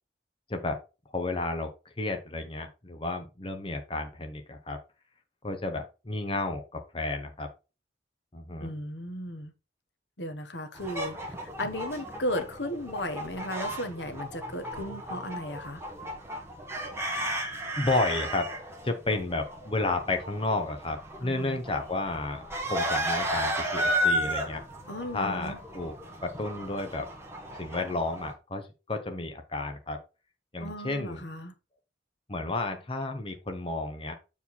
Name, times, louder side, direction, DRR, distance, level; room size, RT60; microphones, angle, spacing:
voice 1, 1.1-4.8 5.4-7.5 8.3-8.7 17.8-18.5 18.8-24.6 25.1-25.9 26.2-27.1 27.6-30.0 30.5-31.2 32.3-34.1, left 2 dB, 30° left, 1.0 m, -32 dB
voice 2, 8.6-9.5 10.2-15.8 21.2-21.6 24.9-25.6 30.6-31.5, left 1 dB, 70° left, 1.3 m, -35 dB
sound 1, 10.8-28.3, equal, 15° right, 1.7 m, -34 dB
7.7 x 4.7 x 4.2 m
head